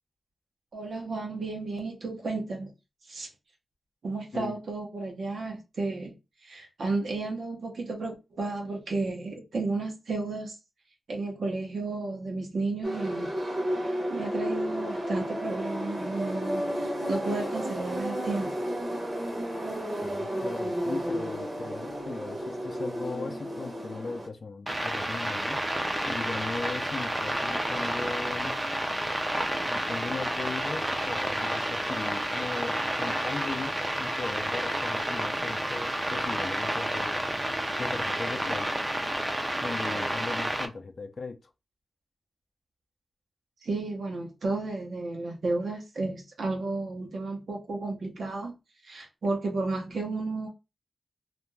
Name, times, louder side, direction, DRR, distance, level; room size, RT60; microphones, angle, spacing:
voice 1, 0.7-2.7 3.1-3.3 4.0-6.1 6.4-10.6 11.1-13.3 14.1-18.5 39.9-40.0 43.6-48.5 48.8-50.5, right 3 dB, 70° right, 0.8 m, -32 dB
sound 1, 12.8-24.3, equal, 40° right, 1.0 m, -32 dB
voice 2, 20.0-25.7 26.0-28.6 29.7-37.2 37.8-38.8 39.6-41.4, left 4 dB, 50° left, 0.4 m, -38 dB
sound 2, 24.7-40.7, right 1 dB, 15° right, 0.5 m, -30 dB
2.5 x 2.2 x 3.1 m
wide cardioid pair, 150°, 0 cm